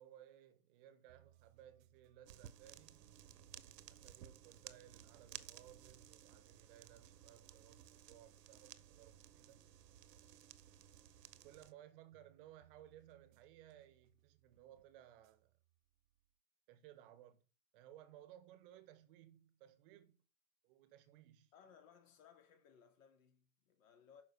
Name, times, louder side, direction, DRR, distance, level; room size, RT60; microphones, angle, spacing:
voice 1, 0.0-3.1 3.9-9.6 11.4-15.6 16.7-17.4 17.7-20.2 20.6-21.5, right 12 dB, 35° right, 1.2 m, -61 dB
sound 1, 1.1-16.3, right 12 dB, 55° right, 0.7 m, -72 dB
sound 2, 2.3-11.7, right 10 dB, 85° right, 1.3 m, -57 dB
voice 2, 21.5-24.2, left 7 dB, 55° left, 3.1 m, -64 dB
9.4 x 6.2 x 6.4 m
supercardioid pair, 155°, 48 cm